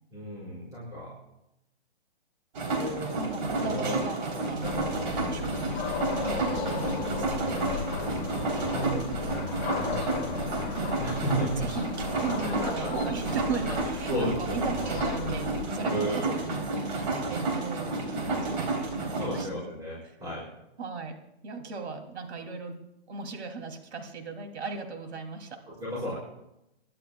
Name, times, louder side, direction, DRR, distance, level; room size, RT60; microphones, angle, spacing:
voice 1, 0.1-1.1 2.7-3.2 3.7-3.9 4.3-4.7 5.0-5.6 6.6-6.9 7.4-9.3 9.6-11.7 12.4-12.9 14.1-14.3 15.8-16.4 19.2-20.5 25.7-26.1, right 1 dB, 10° right, -8 dB, 5.4 m, -35 dB
sound 1, 2.5-19.4, right 3 dB, 45° right, 3.5 m, -31 dB
voice 2, 3.2-7.3 11.2-17.9 18.3-19.5 20.8-21.2 21.4-22.8 23.1-25.6, right 4 dB, 75° right, 4 dB, 2.9 m, -37 dB
sound 2, 4.6-15.7, left 6 dB, 20° left, 2.1 m, -36 dB
27.0 x 11.5 x 2.3 m, 0.84 s
hypercardioid pair, 165°, 33 cm